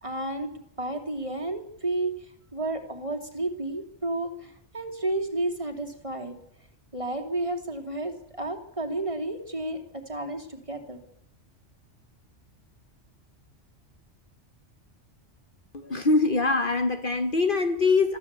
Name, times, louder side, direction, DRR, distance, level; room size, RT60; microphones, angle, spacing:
voice 1, 0.0-0.5 0.8-2.1 2.5-6.4 6.9-11.0, right 2 dB, 25° right, 2.8 m, -31 dB
voice 2, 15.7-18.2, left 3 dB, 45° left, 1.3 m, -23 dB
26.0 x 14.0 x 8.2 m
omnidirectional pair, 1.2 m